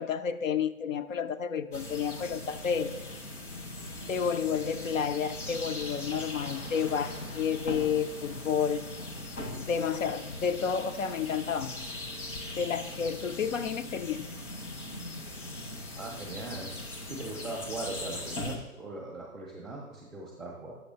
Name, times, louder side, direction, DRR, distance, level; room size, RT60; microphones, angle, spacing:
voice 1, 0.0-2.9 4.1-8.9 9.5-11.8 12.6-14.3, left 7 dB, 70° left, 11 dB, 0.5 m, -31 dB
sound 1, 1.7-18.6, left 1 dB, 85° left, 1.5 m, -40 dB
voice 2, 16.0-16.7 17.1-20.7, right 2 dB, 5° right, -4 dB, 0.4 m, -39 dB
8.2 x 6.7 x 2.8 m, 1.0 s
figure-of-eight pair, 130°, 42 cm